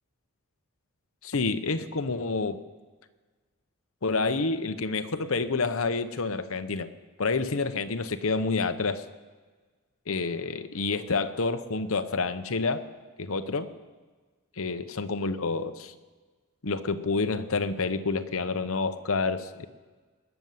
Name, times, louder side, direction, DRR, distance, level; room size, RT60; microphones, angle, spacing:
voice 1, 1.2-2.6 4.0-6.9 7.2-9.0 10.1-12.8 13.2-13.7 14.6-15.9 16.6-19.7, left 4 dB, 65° left, 9 dB, 0.9 m, -28 dB
20.0 x 7.1 x 9.4 m, 1.4 s
head